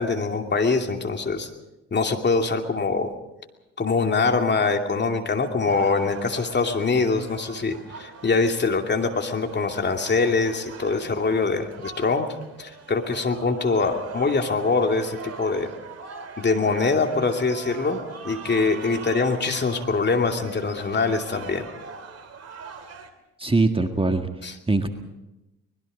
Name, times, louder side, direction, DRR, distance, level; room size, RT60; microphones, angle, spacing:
voice 1, 0.0-1.5 1.9-3.1 3.8-12.3 12.6-15.7 16.4-21.6 24.4-24.5, left 4 dB, 30° left, 4 dB, 2.7 m, -23 dB
sound 1, 5.7-23.1, right 5 dB, 45° right, 2.8 m, -41 dB
voice 2, 23.4-24.3 24.7-24.9, right 2 dB, 15° right, 6 dB, 1.7 m, -21 dB
24.0 x 21.0 x 5.2 m, 0.97 s
hypercardioid pair, 55°, 35 cm